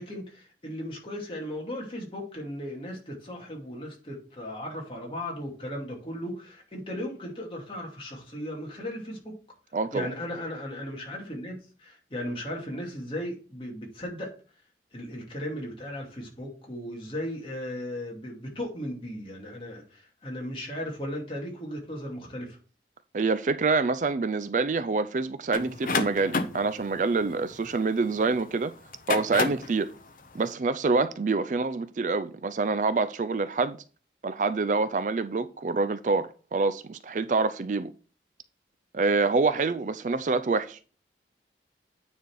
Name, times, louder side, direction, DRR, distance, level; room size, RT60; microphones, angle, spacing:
voice 1, 0.0-9.3 9.9-14.3 14.9-22.6, left 1 dB, 30° left, 2.5 m, -36 dB
voice 2, 9.7-10.1 23.1-28.7 29.1-29.9 30.3-33.8 34.2-37.9 38.9-41.0, right 3 dB, 45° right, 0.4 m, -26 dB
sound 1, 25.5-28.2 28.9-29.8, left 3 dB, 50° left, 0.8 m, -30 dB
9.4 x 4.3 x 4.6 m
head